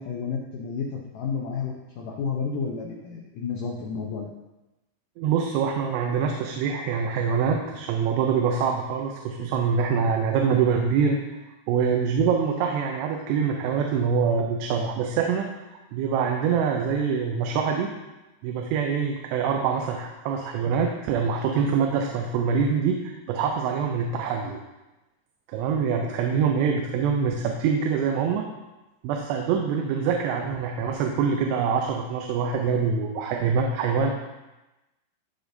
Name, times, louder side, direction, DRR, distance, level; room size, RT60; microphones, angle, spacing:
voice 1, 0.0-4.3 34.0-34.1, left 5 dB, 85° left, -1 dB, 1.9 m, -31 dB
voice 2, 5.2-11.2 11.7-15.5 15.9-17.9 18.4-24.6 25.5-28.4 29.0-34.1, right 6 dB, 90° right, 2 dB, 2.8 m, -25 dB
13.5 x 5.1 x 2.6 m, 1.0 s
omnidirectional pair, 4.8 m